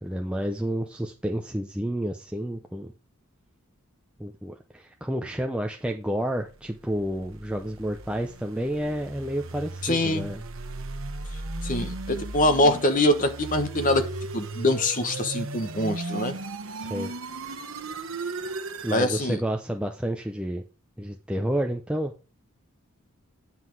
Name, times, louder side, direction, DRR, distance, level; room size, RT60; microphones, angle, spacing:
voice 1, 0.0-2.9 4.2-10.4 16.8-17.1 18.8-20.6 21.0-22.1, equal, 5° right, 3 dB, 0.6 m, -30 dB
sound 1, 6.9-19.1, right 2 dB, 60° right, 1.0 m, -36 dB
voice 2, 9.8-10.3 11.6-14.0 14.3-16.4 18.9-19.4, left 1 dB, 35° left, 8 dB, 1.2 m, -24 dB
9.6 x 5.8 x 4.7 m, 0.33 s
head